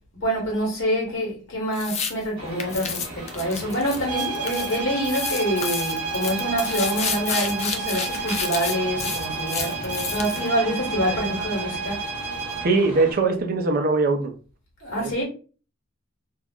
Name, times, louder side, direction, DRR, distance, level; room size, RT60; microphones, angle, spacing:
voice 1, 0.2-12.1 14.8-15.2, equal, 55° left, 1.0 m, -26 dB
sound 1, 1.7-2.1 2.6-4.8 5.0-10.5, left 6 dB, 30° left, 0.3 m, -30 dB
sound 2, 2.4-13.1, right 1 dB, 20° right, 0.9 m, -38 dB
sound 3, 4.1-12.8, right 4 dB, 90° right, 0.8 m, -31 dB
voice 2, 12.6-14.3 15.0-15.2, right 3 dB, 40° right, 0.4 m, -21 dB
2.4 x 2.0 x 3.4 m
head